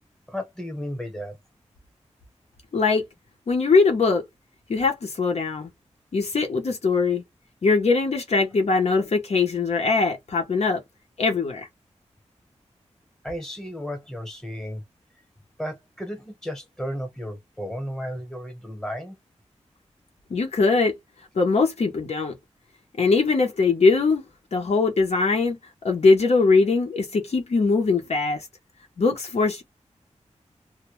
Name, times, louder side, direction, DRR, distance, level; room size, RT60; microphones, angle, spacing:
voice 1, 0.3-1.4 13.2-14.8 15.6-19.2, equal, 5° left, 0.9 m, -33 dB
voice 2, 2.7-3.0 3.5-4.2 4.7-5.7 6.1-7.2 7.6-10.8 11.2-11.7 20.3-20.9 21.3-22.3 23.0-24.2 24.5-25.6 25.8-28.4 29.0-29.6, left 4 dB, 60° left, 0.7 m, -21 dB
2.2 x 2.1 x 3.0 m
wide cardioid pair, 115°, 12 cm